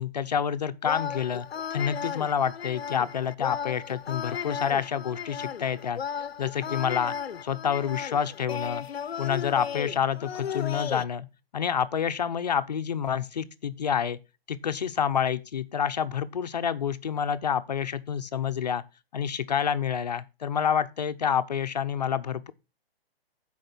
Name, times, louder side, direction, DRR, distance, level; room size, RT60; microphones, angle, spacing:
voice 1, 0.0-6.0 6.4-7.2 7.4-8.9 9.2-11.3 11.5-14.2 14.5-18.8 19.1-22.5, left 8 dB, 45° left, 0.8 m, -28 dB
sound 1, 0.8-11.0, left 8 dB, 85° left, 0.8 m, -35 dB
12.0 x 5.0 x 6.0 m
hypercardioid pair, 170°, 30 cm